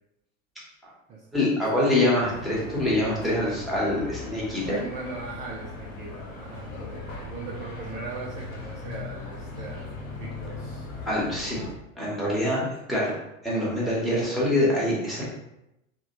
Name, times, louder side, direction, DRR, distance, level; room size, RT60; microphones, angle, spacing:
voice 1, 1.3-4.7 11.1-11.6 12.0-13.1 13.4-15.2, left 1 dB, ahead, -7 dB, 1.1 m, -25 dB
sound 1, 2.2-11.7, left 3 dB, 85° left, 0.7 m, -39 dB
voice 2, 4.6-10.9 12.6-12.7, right 4 dB, 20° right, -3 dB, 0.3 m, -39 dB
3.1 x 2.2 x 2.8 m, 0.86 s
figure-of-eight pair, 75°, 40 cm